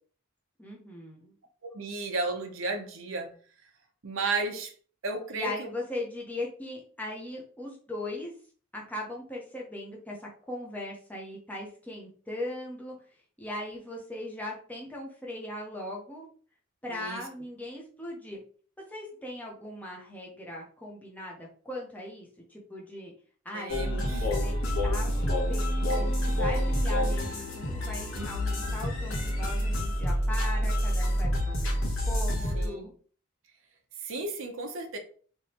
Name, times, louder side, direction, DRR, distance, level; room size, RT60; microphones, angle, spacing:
voice 1, 0.6-1.3 5.3-8.3 8.7-13.0 13.4-16.3 16.8-18.4 18.9-23.1 23.4-24.6 24.8-32.9, left 1 dB, 10° left, 0.9 m, -39 dB
voice 2, 1.6-3.3 4.0-4.7 5.0-5.7 16.9-17.2 23.5-24.3 28.2-28.3 32.5-32.8 34.0-35.0, right 3 dB, 75° right, 0.7 m, -33 dB
sound 1, 23.7-32.7, equal, 85° left, 1.1 m, -28 dB
3.6 x 3.0 x 2.9 m
head